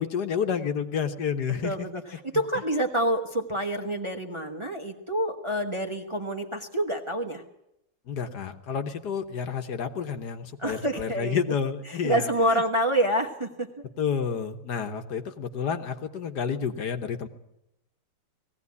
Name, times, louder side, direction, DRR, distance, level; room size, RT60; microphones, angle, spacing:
voice 1, 0.0-1.9 8.1-12.6 14.0-17.3, left 7 dB, 65° left, 7 dB, 1.7 m, -30 dB
voice 2, 1.5-7.4 10.6-11.4 11.9-13.7, right 1 dB, 20° right, 3 dB, 1.1 m, -27 dB
19.0 x 16.0 x 9.6 m, 0.84 s
omnidirectional pair, 1.9 m